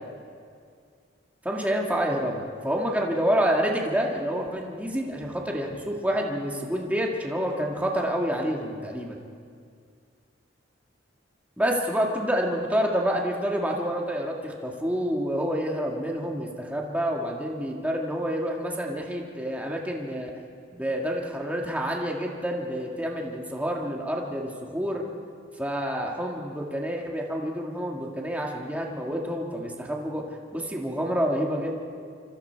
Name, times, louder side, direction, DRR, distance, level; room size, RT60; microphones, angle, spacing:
voice 1, 1.4-9.2 11.6-20.3 20.7-25.0 25.6-30.2 30.5-31.8, equal, 10° right, -1 dB, 1.9 m, -28 dB
27.0 x 25.5 x 4.6 m, 2.2 s
head